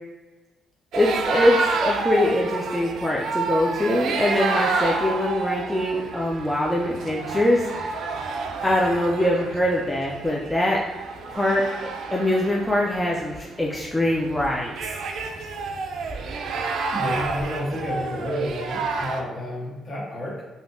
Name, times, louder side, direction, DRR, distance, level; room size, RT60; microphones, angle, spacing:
voice 1, 0.9-7.7 8.6-10.8 11.3-11.6 12.1-14.7, left 1 dB, 10° left, -3 dB, 0.4 m, -23 dB
sound 1, 0.9-19.2, right 4 dB, 70° right, 0.3 m, -29 dB
voice 2, 16.9-20.4, equal, 40° left, -4 dB, 1.1 m, -30 dB
3.3 x 2.7 x 2.6 m, 1.2 s
cardioid pair, 90°, 0 cm